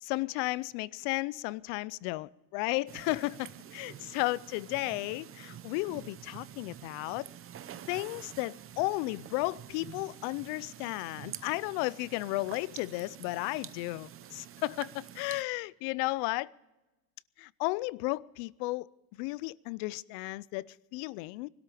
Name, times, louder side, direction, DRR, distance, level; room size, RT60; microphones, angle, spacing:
voice 1, 0.0-7.3 7.9-16.5 17.4-18.9 19.2-21.5, left 21 dB, 90° left, 0.6 m, -34 dB
sound 1, 2.9-15.4, right 10 dB, 30° right, 0.7 m, -48 dB
21.0 x 12.5 x 5.0 m
cardioid pair, 150°, 44 cm